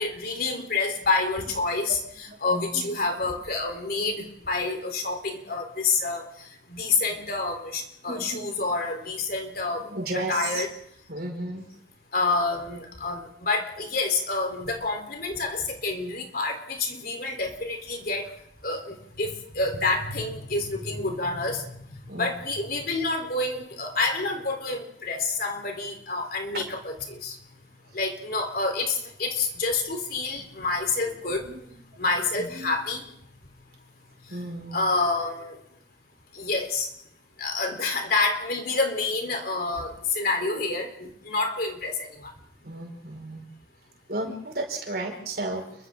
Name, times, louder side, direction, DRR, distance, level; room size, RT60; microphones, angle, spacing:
voice 1, 0.0-6.2 6.7-9.9 10.3-10.7 12.1-18.3 18.6-21.6 22.2-27.4 27.9-31.5 32.0-33.0 34.7-35.5 36.3-36.9 37.4-42.1, left 3 dB, 55° left, 4 dB, 3.8 m, -28 dB
voice 2, 1.4-3.6 7.1-7.4 8.0-8.8 9.6-10.7 11.1-11.7 18.0-18.1 20.2-20.3 22.1-22.4 26.5-26.8 27.8-28.2 30.4-33.2 34.3-34.8 37.6-37.7 42.6-43.5 44.1-45.9, right 2 dB, 55° right, 2 dB, 5.4 m, -36 dB
30.0 x 23.5 x 3.8 m, 0.70 s
head